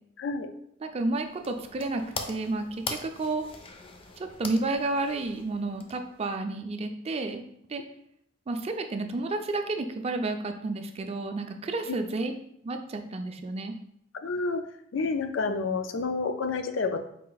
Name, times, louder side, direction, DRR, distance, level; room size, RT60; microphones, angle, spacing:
voice 1, 0.2-0.5 11.9-12.0 14.2-14.6 14.9-17.0, left 4 dB, 85° left, 8 dB, 0.4 m, -29 dB
voice 2, 0.8-3.4 4.2-7.4 7.7-7.8 8.5-12.3 12.6-13.7, right 2 dB, 35° right, 6 dB, 0.4 m, -31 dB
sound 1, 1.0-6.3, left 3 dB, 30° left, 0.4 m, -42 dB
4.3 x 2.4 x 3.9 m, 0.72 s
head